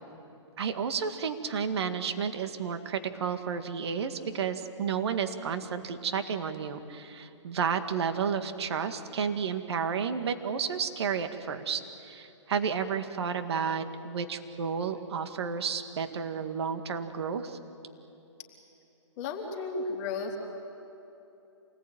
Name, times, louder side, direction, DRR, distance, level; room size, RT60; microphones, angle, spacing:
voice 1, 0.6-17.6, right 6 dB, 60° right, 8 dB, 2.1 m, -31 dB
voice 2, 19.2-20.4, left 4 dB, 35° left, -1 dB, 3.6 m, -33 dB
27.5 x 19.5 x 9.3 m, 3.0 s
hypercardioid pair, 140°, 16 cm